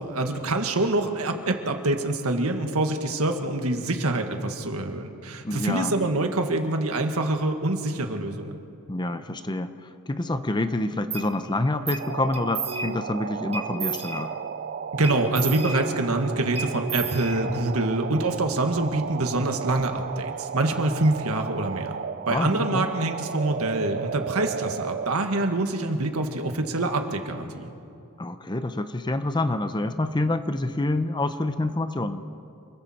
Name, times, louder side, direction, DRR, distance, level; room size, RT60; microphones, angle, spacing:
voice 1, 0.0-8.6 14.9-22.0 22.3-27.7, right 2 dB, 75° right, 5 dB, 1.8 m, -25 dB
voice 2, 5.4-6.0 8.9-14.3 22.3-22.9 28.2-32.2, left 2 dB, 20° left, 10 dB, 0.7 m, -27 dB
sound 1, 11.1-11.3 11.9-12.1 12.3-13.1 13.5-14.5 15.0-16.2 16.6-17.8, right 5 dB, 30° right, 1.4 m, -33 dB
sound 2, 12.0-25.1, right 6 dB, 45° right, 0.4 m, -34 dB
28.5 x 21.5 x 4.4 m, 2.5 s
head